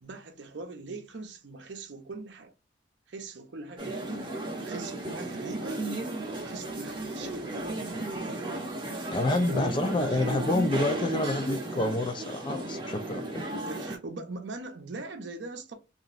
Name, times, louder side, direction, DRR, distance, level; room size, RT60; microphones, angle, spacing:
voice 1, 0.0-2.5 3.1-4.3 4.6-5.8 6.4-8.6 9.5-10.5 13.6-15.7, right 3 dB, 65° right, 0.6 m, -40 dB
sound 1, 3.8-14.0, right 2 dB, 25° right, 0.7 m, -34 dB
voice 2, 9.1-13.4, left 2 dB, 25° left, 0.3 m, -28 dB
2.9 x 2.5 x 2.4 m
head